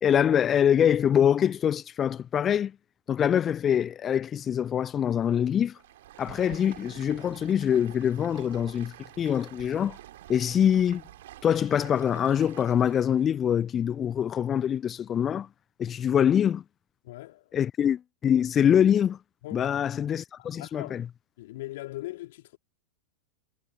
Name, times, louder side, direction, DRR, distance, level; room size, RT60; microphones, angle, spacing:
voice 1, 0.0-2.7 3.1-5.8 6.2-10.0 10.3-11.0 11.4-15.5 15.8-16.6 17.5-19.2 19.5-21.1, left 9 dB, 25° left, 0.5 m, -24 dB
Stream, 5.7-13.3, right 14 dB, 55° right, 3.0 m, -48 dB
voice 2, 17.0-17.5 19.4-19.7 20.4-20.9 21.4-22.6, left 17 dB, 55° left, 3.5 m, -40 dB
figure-of-eight pair, 90°, 0 cm